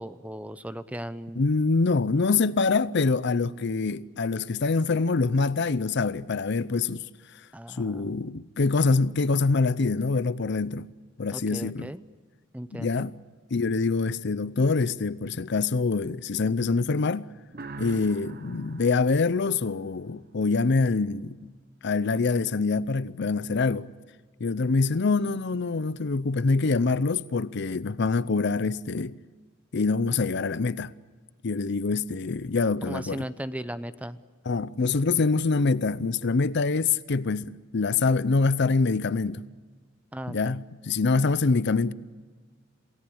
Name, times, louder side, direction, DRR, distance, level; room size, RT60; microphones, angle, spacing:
voice 1, 0.0-1.4 7.5-8.2 11.3-12.0 12.5-13.1 32.9-34.2 34.8-35.3 40.1-40.6, equal, 5° right, 0.7 m, -37 dB
voice 2, 1.4-7.0 7.8-10.9 11.2-11.9 12.7-13.2 13.5-17.3 17.8-21.5 21.8-23.9 24.4-29.2 29.7-30.9 31.4-33.3 34.5-39.4 40.3-41.9, left 4 dB, 55° left, 0.6 m, -25 dB
sound 1, 17.5-20.2, right 3 dB, 45° right, 1.0 m, -43 dB
27.5 x 17.5 x 8.7 m
head